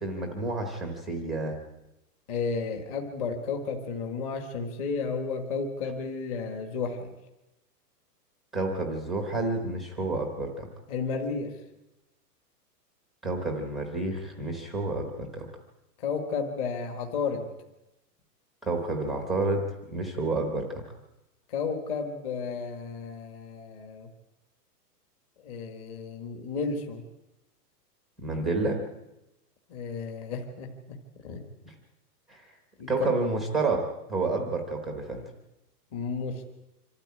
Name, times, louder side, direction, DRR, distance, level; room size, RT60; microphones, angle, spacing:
voice 1, 0.0-1.6 8.5-10.7 13.2-15.5 18.6-20.8 28.2-28.8 32.3-32.5 32.9-33.8 34.1-35.2, right 3 dB, ahead, 3 dB, 0.9 m, -29 dB
voice 2, 2.3-7.1 10.9-11.5 16.0-17.5 21.5-24.1 25.4-27.0 29.7-31.0 31.2-31.4 32.8-32.9 35.9-36.4, left 5 dB, 20° left, 3 dB, 1.5 m, -32 dB
25.5 x 13.5 x 8.5 m, 0.94 s
hypercardioid pair, 180°, 49 cm